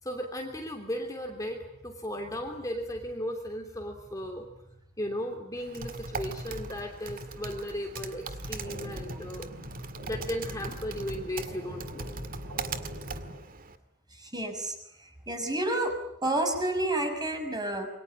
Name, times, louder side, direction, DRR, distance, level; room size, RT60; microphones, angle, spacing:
voice 1, 0.0-9.5 10.0-12.2, equal, 15° left, 2 dB, 3.1 m, -36 dB
Typing, 5.6-13.8, right 3 dB, 40° right, 2.0 m, -39 dB
sound 1, 8.2-13.4, equal, 65° right, 7.0 m, -44 dB
voice 2, 14.2-14.7 15.3-15.9 16.2-17.9, right 1 dB, 20° right, 4 dB, 6.1 m, -29 dB
28.0 x 23.5 x 8.9 m, 0.77 s
head